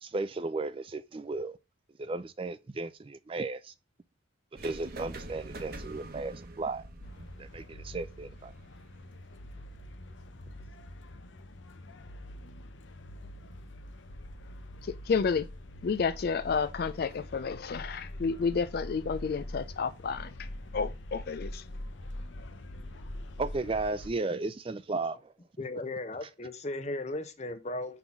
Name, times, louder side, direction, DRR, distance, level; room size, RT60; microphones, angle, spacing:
voice 1, 0.0-1.6 2.0-3.7 4.6-6.8 7.4-8.5 23.4-25.3, right 3 dB, 25° right, 0.3 m, -34 dB
sound 1, 4.6-10.5, right 2 dB, 50° right, 1.0 m, -46 dB
sound 2, 7.0-24.1, left 1 dB, 70° left, 0.8 m, -44 dB
voice 2, 14.9-15.5 15.8-20.3 20.7-21.6, left 5 dB, 50° left, 0.3 m, -30 dB
voice 3, 25.6-28.0, left 2 dB, 35° left, 0.8 m, -36 dB
5.7 x 3.9 x 5.8 m
head